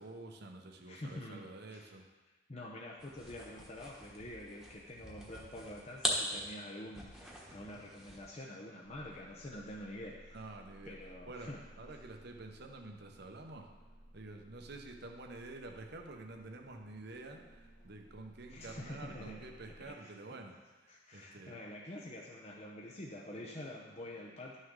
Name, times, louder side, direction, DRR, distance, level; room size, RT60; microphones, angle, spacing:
voice 1, 0.0-2.1 9.1-9.2 10.3-11.0 11.2-13.7 14.1-21.6, right 2 dB, 60° right, 3 dB, 1.0 m, -49 dB
voice 2, 0.9-1.4 1.7-1.9 2.5-10.4 10.9-11.6 18.5-19.4 19.9-20.1 20.9-24.6, left 1 dB, 35° left, -3 dB, 0.8 m, -47 dB
sound 1, 3.0-8.4, equal, ahead, 1.3 m, -41 dB
sound 2, 8.8-19.9, equal, 65° left, 1.5 m, -59 dB
11.5 x 6.5 x 3.7 m, 1.2 s
head